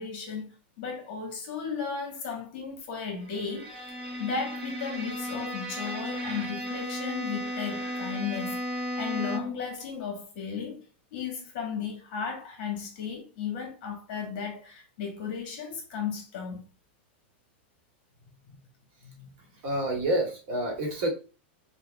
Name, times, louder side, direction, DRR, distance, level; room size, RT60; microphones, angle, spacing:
voice 1, 0.0-3.9 4.2-10.8 11.1-16.6 18.5-18.6 19.0-19.3, left 6 dB, 45° left, 1.3 m, -35 dB
Bowed string instrument, 3.2-9.7, equal, 15° right, 0.8 m, -35 dB
voice 2, 19.6-21.1, right 1 dB, 35° right, 1.1 m, -28 dB
5.6 x 2.1 x 2.3 m
supercardioid pair, 175°, 6 cm